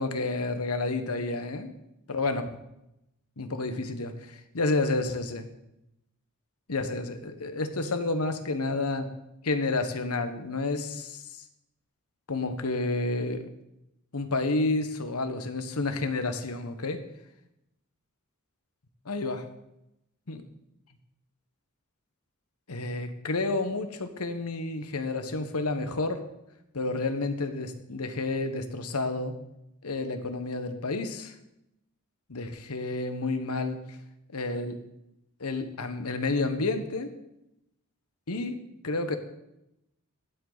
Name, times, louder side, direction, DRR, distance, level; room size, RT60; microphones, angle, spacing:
voice 1, 0.0-1.7 2.1-2.5 3.4-5.4 6.7-9.1 9.4-11.2 12.3-13.5 14.1-17.0 19.1-19.4 20.3-20.4 22.7-26.2 26.7-29.3 29.8-31.3 32.3-33.8 34.3-34.8 35.4-37.1 38.3-39.2, left 3 dB, 85° left, 8 dB, 1.2 m, -30 dB
16.0 x 7.9 x 4.0 m, 0.87 s
head